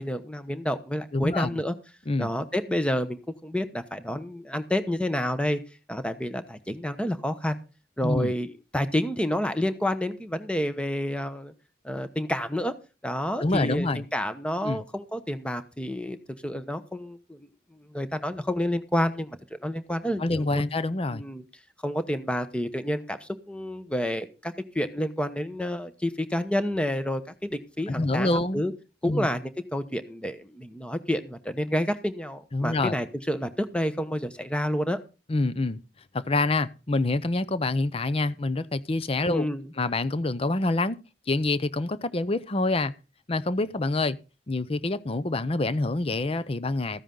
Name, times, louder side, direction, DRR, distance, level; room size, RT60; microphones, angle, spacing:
voice 1, 0.0-1.7 2.2-5.6 5.9-7.6 8.0-11.5 11.8-12.7 13.0-16.2 16.4-20.6 21.1-21.4 21.8-28.7 29.0-35.0 39.3-39.7, equal, 5° left, 1.0 m, -29 dB
voice 2, 1.1-1.6 2.1-2.3 8.0-8.3 13.4-14.0 14.6-14.8 20.2-21.2 27.9-28.6 29.0-29.3 32.5-33.0 35.3-35.8 36.1-39.5 39.8-41.0 41.3-42.9 43.3-44.2 44.5-47.0, left 2 dB, 30° left, 0.6 m, -26 dB
14.0 x 9.9 x 3.9 m
head